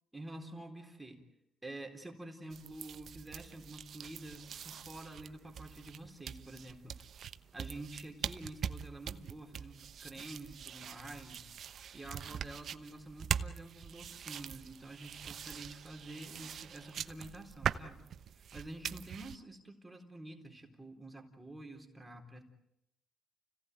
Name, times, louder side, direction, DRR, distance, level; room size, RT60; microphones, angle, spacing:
voice 1, 0.1-1.2 1.6-6.9 7.5-11.5 11.9-18.1 18.3-22.4, right 2 dB, 10° right, 3 dB, 4.0 m, -48 dB
sound 1, 2.5-19.4, right 8 dB, 60° right, 1.0 m, -43 dB
29.5 x 17.5 x 9.2 m, 0.82 s
cardioid pair, 90°, 0 cm